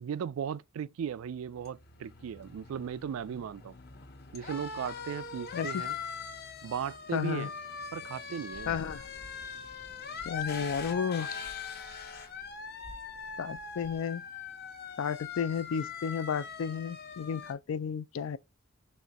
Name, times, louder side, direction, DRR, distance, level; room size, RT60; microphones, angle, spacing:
voice 1, 0.0-3.7 4.3-5.9 6.6-7.5 7.9-8.8, right 7 dB, 75° right, 0.3 m, -37 dB
sound 1, 1.1-17.5, left 5 dB, 45° left, 0.8 m, -42 dB
voice 2, 5.5-5.8 7.1-7.5 8.7-9.1 10.2-11.3 13.4-14.2 15.0-18.4, left 7 dB, 70° left, 0.3 m, -33 dB
sound 2, 8.5-14.0, equal, ahead, 0.5 m, -54 dB
4.2 x 3.0 x 3.5 m
head